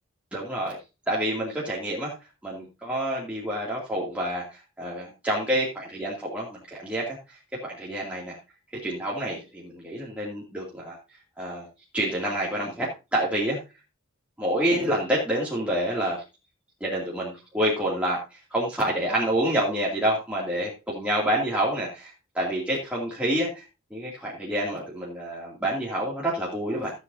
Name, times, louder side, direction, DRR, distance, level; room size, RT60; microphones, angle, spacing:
voice 1, 0.3-0.8 1.1-2.1 2.4-7.1 7.6-8.4 8.8-11.0 11.4-11.7 11.9-13.6 14.4-16.2 16.8-23.6 23.9-26.9, right 1 dB, 5° right, -6 dB, 2.5 m, -28 dB
16.0 x 8.1 x 2.7 m, 0.28 s
head